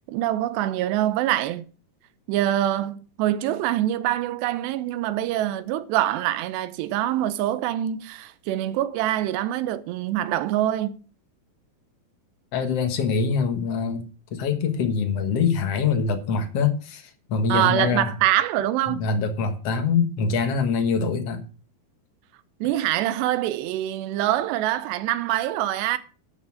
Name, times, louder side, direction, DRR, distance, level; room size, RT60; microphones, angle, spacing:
voice 1, 0.1-1.7 2.3-11.0 17.5-19.0 22.6-26.0, right 13 dB, 85° right, 3.0 m, -24 dB
voice 2, 12.5-14.1 14.3-18.1 18.9-21.4, left 5 dB, 60° left, 1.7 m, -24 dB
11.0 x 6.8 x 6.2 m
omnidirectional pair, 4.8 m